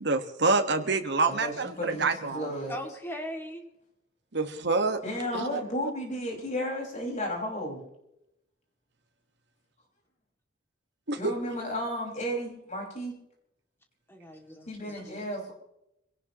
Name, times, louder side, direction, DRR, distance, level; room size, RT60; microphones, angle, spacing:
voice 1, 0.0-2.5 4.3-5.0 5.3-5.6 11.1-11.3, right 3 dB, 65° right, 6 dB, 1.5 m, -27 dB
voice 2, 1.3-2.7 5.0-7.9 11.2-13.2 14.7-15.5, equal, 40° left, -1 dB, 5.4 m, -33 dB
voice 3, 2.7-3.7 14.1-15.3, equal, 15° left, 2 dB, 2.4 m, -39 dB
26.0 x 17.5 x 3.0 m, 0.84 s
head